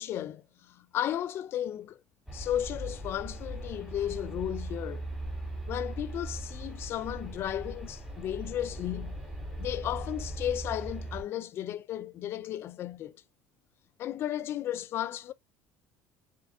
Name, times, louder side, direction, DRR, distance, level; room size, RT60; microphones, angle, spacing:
voice 1, 0.0-2.0 2.3-5.1 5.7-9.2 9.6-13.2 14.0-15.3, left 11 dB, 40° left, 0.4 m, -34 dB
sound 1, 2.3-11.2, right 1 dB, 5° right, 2.1 m, -39 dB
4.1 x 3.6 x 3.5 m
cardioid pair, 145°, 6 cm